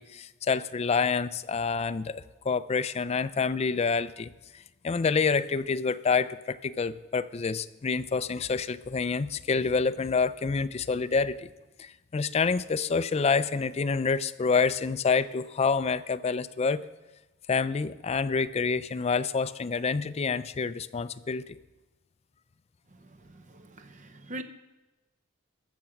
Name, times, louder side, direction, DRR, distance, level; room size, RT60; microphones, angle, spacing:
voice 1, 0.0-4.3 4.8-11.5 11.8-16.8 17.5-21.4, left 5 dB, 30° left, 14 dB, 0.4 m, -27 dB
voice 2, 23.1-24.4, right 1 dB, 35° right, 9 dB, 0.7 m, -43 dB
13.5 x 7.5 x 5.8 m, 1.1 s
head